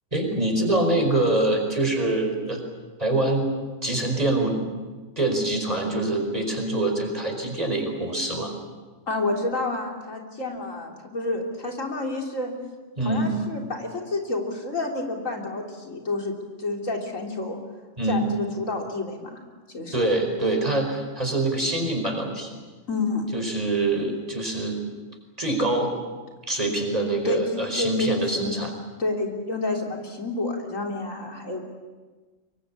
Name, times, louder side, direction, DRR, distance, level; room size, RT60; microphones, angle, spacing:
voice 1, 0.1-2.6 3.0-3.4 3.8-4.6 5.2-8.5 13.0-13.3 18.0-18.3 19.9-22.6 23.3-24.8 25.4-25.9 26.5-28.7, right 2 dB, 30° right, 3 dB, 4.9 m, -24 dB
voice 2, 9.1-12.5 13.0-16.3 16.6-17.6 18.1-19.4 19.7-20.0 22.9-23.3 27.2-28.1 28.4-28.6 29.0-31.6, left 2 dB, 85° left, 1 dB, 3.8 m, -29 dB
25.0 x 23.0 x 8.6 m, 1.3 s
omnidirectional pair, 1.3 m